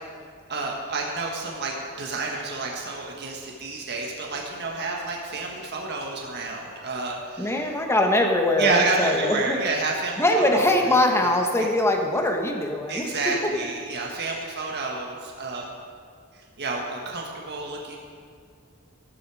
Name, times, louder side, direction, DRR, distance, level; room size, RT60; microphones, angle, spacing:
voice 1, 0.5-7.8 8.6-10.9 11.2-11.7 12.9-15.7 16.3-18.0, right 3 dB, 50° right, -1 dB, 1.6 m, -30 dB
voice 2, 7.4-9.6 10.2-13.1, left 1 dB, 10° left, 2 dB, 1.5 m, -22 dB
15.5 x 12.0 x 4.9 m, 2.3 s
head